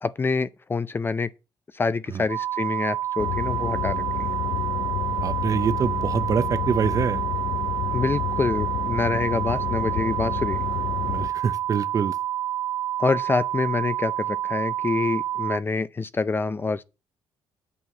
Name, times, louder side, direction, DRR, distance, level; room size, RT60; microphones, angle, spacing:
voice 1, 0.0-1.3 1.7-4.3 7.9-10.6 13.0-16.8, left 4 dB, 25° left, 0.5 m, -26 dB
sound 1, 2.3-15.6, right 12 dB, 65° right, 1.0 m, -28 dB
sound 2, 3.2-11.3, left 14 dB, 85° left, 0.4 m, -30 dB
voice 2, 5.2-7.2 11.1-12.2, right 6 dB, 40° right, 0.7 m, -25 dB
8.4 x 4.5 x 7.3 m
cardioid pair, 100°, 9 cm